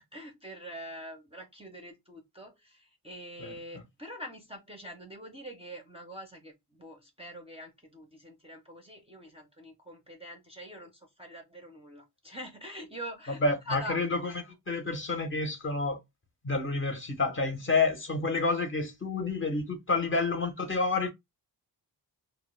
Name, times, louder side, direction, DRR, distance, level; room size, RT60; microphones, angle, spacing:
voice 1, 0.0-14.1 20.2-20.5, equal, 15° right, 0.4 m, -44 dB
voice 2, 13.3-14.3 14.7-16.0 16.4-21.1, left 3 dB, 30° left, 0.6 m, -29 dB
2.2 x 2.0 x 2.9 m
wide cardioid pair, 115°, 43 cm